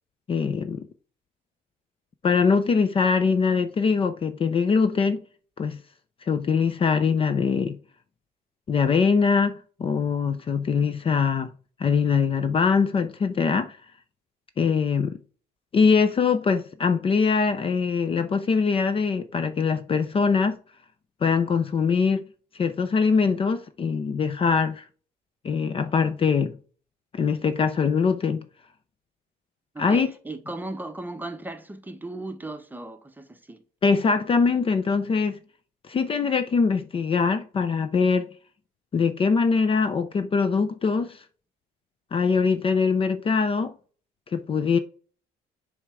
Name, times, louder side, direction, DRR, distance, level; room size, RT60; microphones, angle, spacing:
voice 1, 0.3-0.9 2.2-5.2 5.6-5.8 6.3-7.8 8.7-11.5 11.8-13.8 14.6-15.2 15.7-20.6 21.2-22.3 22.6-24.8 25.4-26.6 27.1-28.4 29.8-30.1 33.8-35.4 35.9-38.3 38.9-41.2 42.1-43.7 44.3-44.8, left 5 dB, 35° left, 0.5 m, -22 dB
voice 2, 29.7-33.6, right 2 dB, 10° right, 0.8 m, -36 dB
7.1 x 3.5 x 4.9 m
cardioid pair, 110°, 17 cm